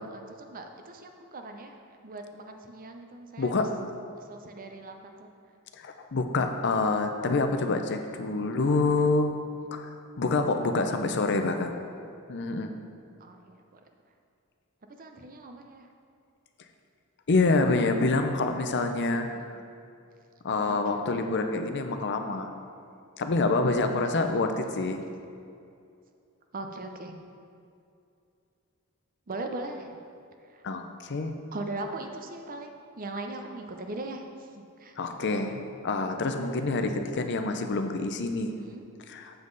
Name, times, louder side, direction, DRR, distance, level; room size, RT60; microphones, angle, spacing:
voice 1, 0.0-3.7 4.2-5.3 6.3-6.7 8.6-9.1 13.2-13.8 14.1-14.2 14.9-15.9 17.9-19.6 20.7-21.2 23.7-24.4 26.5-27.2 29.3-30.0 30.4-30.6 31.5-34.9 38.5-38.9, right 2 dB, 40° right, 5 dB, 0.7 m, -41 dB
voice 2, 3.4-3.7 5.8-9.3 9.7-11.8 12.3-12.7 17.3-19.3 20.4-22.5 23.2-25.0 30.6-31.3 35.0-38.5 39.1-39.2, left 3 dB, 55° left, 6 dB, 0.6 m, -27 dB
7.9 x 7.4 x 4.0 m, 2.5 s
head